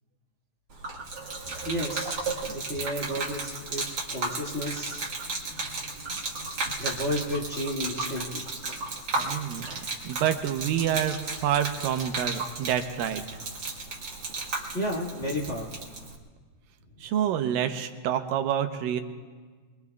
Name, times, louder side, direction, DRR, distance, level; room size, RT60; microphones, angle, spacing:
Gurgling / Liquid, 0.7-16.2, right 3 dB, 45° right, 1.4 m, -34 dB
voice 1, 1.6-5.1 6.8-8.4 14.7-15.7, equal, 25° left, -4 dB, 1.7 m, -32 dB
voice 2, 9.2-9.7 10.0-13.2 17.0-19.0, right 10 dB, 90° right, 7 dB, 2.5 m, -27 dB
26.0 x 22.0 x 2.4 m, 1.5 s
omnidirectional pair, 4.0 m